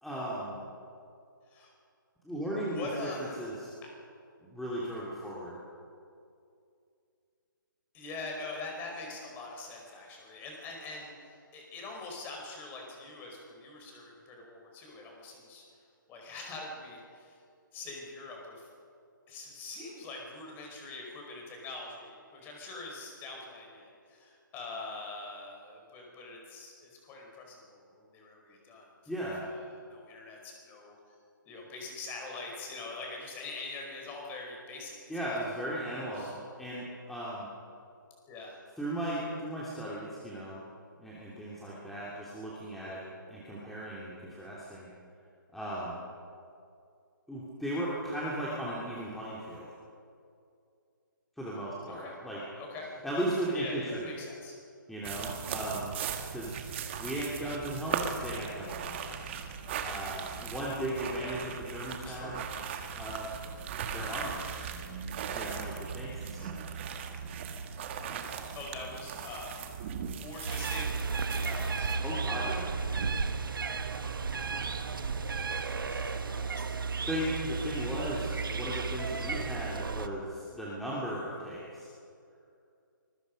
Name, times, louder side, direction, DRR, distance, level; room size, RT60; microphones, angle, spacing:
voice 1, 0.0-0.6 2.2-3.7 4.4-5.6 29.1-29.4 35.1-37.5 38.8-40.6 41.0-44.9 45.5-46.0 47.3-49.7 51.4-52.4 53.0-54.1 54.9-55.9 56.3-56.6 57.0-59.1 59.8-62.3 63.0-63.3 63.9-64.4 65.3-66.6 72.0-72.7 74.5-74.6 77.1-81.9, right 1 dB, ahead, -8 dB, 2.8 m, -36 dB
voice 2, 2.7-3.4 7.9-15.6 16.1-17.4 17.7-18.7 19.3-28.9 29.4-31.2 31.5-35.2 36.2-36.4 38.3-38.6 51.9-52.2 52.6-52.9 53.5-54.6 57.4-57.6 62.0-62.4 68.5-69.5 70.1-71.9 75.1-76.9, left 3 dB, 15° left, 0 dB, 4.9 m, -44 dB
sound 1, 55.0-72.0, right 7 dB, 35° right, 1.8 m, -38 dB
sound 2, 70.5-80.1, right 4 dB, 75° right, 1.4 m, -33 dB
25.0 x 21.5 x 5.3 m, 2.4 s
hypercardioid pair, 155°, 11 cm